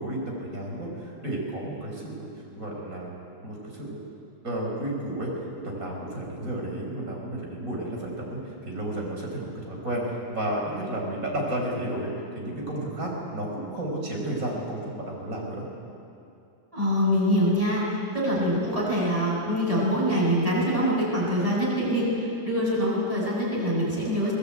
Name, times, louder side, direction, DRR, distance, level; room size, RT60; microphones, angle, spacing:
voice 1, 0.0-2.3 2.6-3.1 3.4-4.0 4.4-5.3 5.6-15.6, right 1 dB, 55° right, -1 dB, 6.3 m, -32 dB
voice 2, 16.7-24.3, equal, 20° right, -6 dB, 8.2 m, -24 dB
23.0 x 19.5 x 9.2 m, 2.6 s
omnidirectional pair, 1.8 m